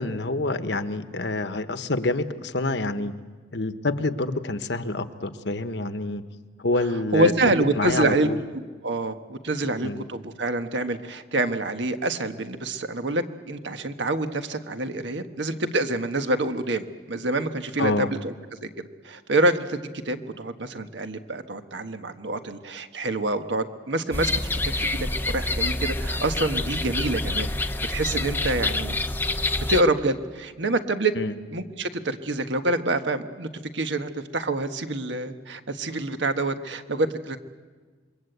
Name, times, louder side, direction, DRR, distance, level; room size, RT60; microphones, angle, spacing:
voice 1, 0.0-3.1 3.5-6.2 6.6-8.4 9.8-10.0 17.8-18.1 31.1-31.3, left 2 dB, 70° left, 10 dB, 1.1 m, -27 dB
voice 2, 7.1-18.3 18.6-24.3 24.6-29.0 29.7-31.1 31.5-33.5 33.7-37.4, right 2 dB, 75° right, 7 dB, 1.4 m, -27 dB
sound 1, 24.1-29.8, left 2 dB, 10° left, 0.7 m, -27 dB
27.0 x 22.5 x 8.1 m, 1.4 s
head